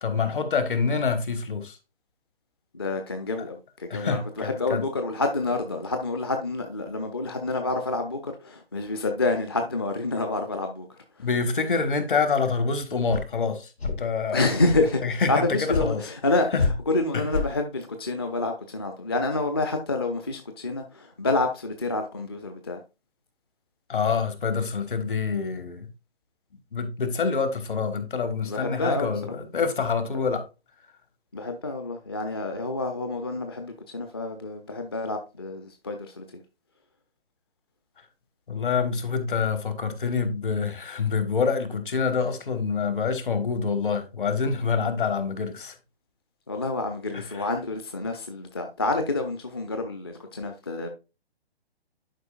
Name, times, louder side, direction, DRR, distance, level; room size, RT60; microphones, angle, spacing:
voice 1, 0.0-1.8 3.9-4.8 11.2-14.4 15.0-16.0 16.5-16.7 17.1-17.2 23.9-25.9 26.7-30.4 38.5-45.7 47.1-47.5, left 5 dB, 55° left, 1.4 m, -26 dB
voice 2, 2.7-11.3 14.3-22.8 28.5-29.1 31.3-36.2 46.5-50.9, left 2 dB, 25° left, 0.4 m, -28 dB
sound 1, 13.1-13.2 13.8-14.0 14.6-14.9 15.7-15.9 16.6-16.7 17.3-17.5, left 4 dB, 75° left, 1.8 m, -26 dB
11.0 x 4.8 x 2.4 m
figure-of-eight pair, 135°, 32 cm